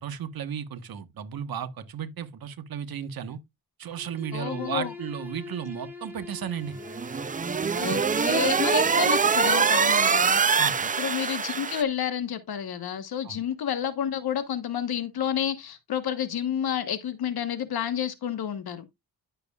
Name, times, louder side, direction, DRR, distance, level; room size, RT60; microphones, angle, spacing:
voice 1, 0.0-3.4 3.8-6.7 10.6-10.9 13.2-13.4, right 8 dB, 60° right, 1.2 m, -34 dB
Bowed string instrument, 3.8-8.8, left 4 dB, 5° right, 2.6 m, -43 dB
voice 2, 4.3-4.9 7.8-10.4 11.0-18.9, left 9 dB, 70° left, 1.2 m, -30 dB
sound 1, 6.8-11.8, right 5 dB, 20° right, 0.4 m, -23 dB
10.5 x 6.8 x 2.3 m
cardioid pair, 110°, 39 cm